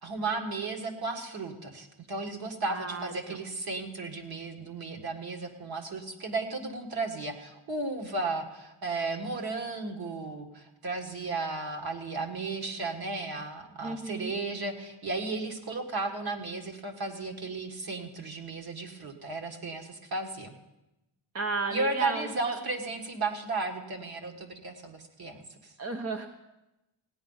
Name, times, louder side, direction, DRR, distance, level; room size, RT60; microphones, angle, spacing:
voice 1, 0.0-20.5 21.7-25.7, right 3 dB, 50° right, 3 dB, 1.7 m, -34 dB
voice 2, 2.7-3.4 13.8-14.3 21.3-22.6 25.8-26.3, right 3 dB, 30° right, 5 dB, 0.7 m, -34 dB
16.5 x 9.9 x 5.6 m, 0.97 s
wide cardioid pair, 150°, 49 cm